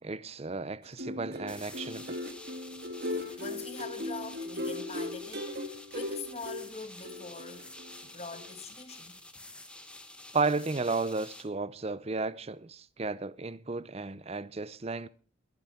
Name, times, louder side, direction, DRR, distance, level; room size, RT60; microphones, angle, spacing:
voice 1, 0.0-2.2 10.3-15.1, right 3 dB, 30° right, 0.6 m, -33 dB
sound 1, 0.8-8.0 8.3-8.5, left 1 dB, 50° right, 2.1 m, -38 dB
sound 2, 1.5-11.4, left 2 dB, 5° left, 1.3 m, -49 dB
voice 2, 3.1-7.7 8.0-9.2, left 4 dB, 30° left, 1.4 m, -44 dB
22.5 x 9.1 x 4.5 m
head